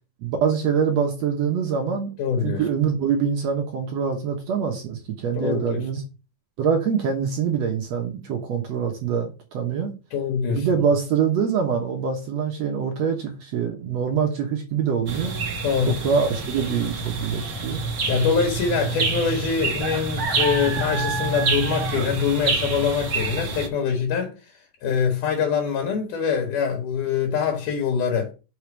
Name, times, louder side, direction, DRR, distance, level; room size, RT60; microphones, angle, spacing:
voice 1, 0.2-2.1 2.4-6.0 6.6-9.9 10.5-15.3 15.9-17.8, right 7 dB, 65° right, 2.2 m, -24 dB
voice 2, 2.2-2.6 5.3-5.8 10.1-10.7 15.6-15.9 18.1-24.3 24.8-28.3, left 6 dB, 85° left, 2.9 m, -24 dB
sound 1, 15.1-23.7, right 3 dB, 45° right, 1.1 m, -27 dB
6.0 x 5.0 x 6.1 m
omnidirectional pair, 3.5 m